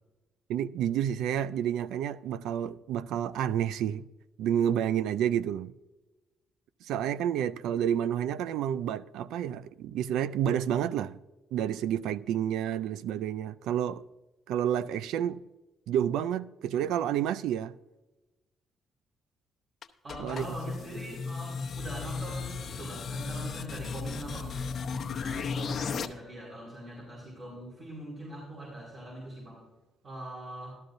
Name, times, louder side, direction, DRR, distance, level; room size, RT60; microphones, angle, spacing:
voice 1, 0.5-4.0 4.4-5.7 6.8-11.2 11.5-14.0 14.5-15.4 15.9-17.8 20.2-20.5, right 10 dB, 85° right, 0.3 m, -29 dB
sound 1, 19.8-26.1, left 5 dB, 50° left, 0.8 m, -35 dB
voice 2, 20.0-24.5 24.9-29.6 30.0-30.7, right 1 dB, 45° right, 4.5 m, -42 dB
13.0 x 13.0 x 2.6 m
supercardioid pair, 75°, 0 cm